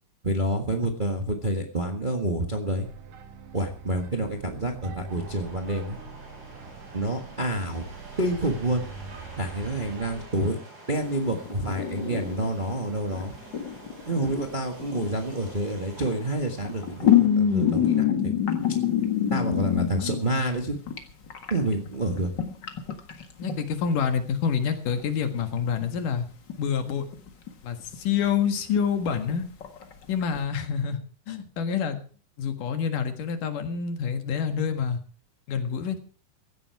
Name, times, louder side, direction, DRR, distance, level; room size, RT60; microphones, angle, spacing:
voice 1, 0.2-2.9 3.5-6.0 6.9-7.9 8.2-8.8 9.4-10.6 10.9-13.3 14.0-18.3 19.3-20.8 21.5-22.3, right 1 dB, 30° right, 3 dB, 0.9 m, -28 dB
sound 1, 2.8-10.3, right 5 dB, 80° right, 3.0 m, -43 dB
sound 2, 5.1-18.0, right 2 dB, 50° right, 8.7 m, -47 dB
sound 3, 11.0-13.2 13.5-15.5 16.5-21.0 21.3-23.5 24.7-24.9 25.1-25.2 25.6-26.1 26.5-26.6 26.9-27.5 27.9-28.4 28.8-28.9 29.3-29.4 29.6-30.4, left 9 dB, 40° left, 1.9 m, -26 dB
voice 2, 23.4-26.3 26.6-27.1 27.6-29.5 30.1-31.0 31.3-32.0 32.4-35.0 35.5-36.0, left 7 dB, 85° left, 7 dB, 3.3 m, -27 dB
16.0 x 12.5 x 4.8 m, 0.40 s
omnidirectional pair, 3.6 m